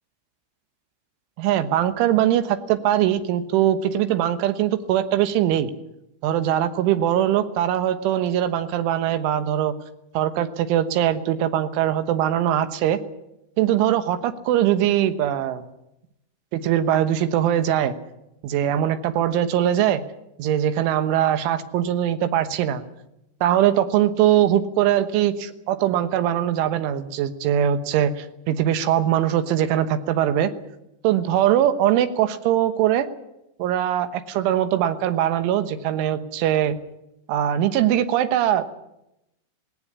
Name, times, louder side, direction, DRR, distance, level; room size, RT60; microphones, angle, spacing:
voice 1, 1.4-5.7 6.2-9.7 10.2-13.0 13.6-15.7 16.5-18.0 18.4-20.0 20.4-22.8 23.4-30.5 31.0-33.1 33.6-36.8 37.3-38.6, right 11 dB, 80° right, 10 dB, 3.6 m, -21 dB
18.0 x 17.5 x 9.8 m, 0.87 s
omnidirectional pair, 5.5 m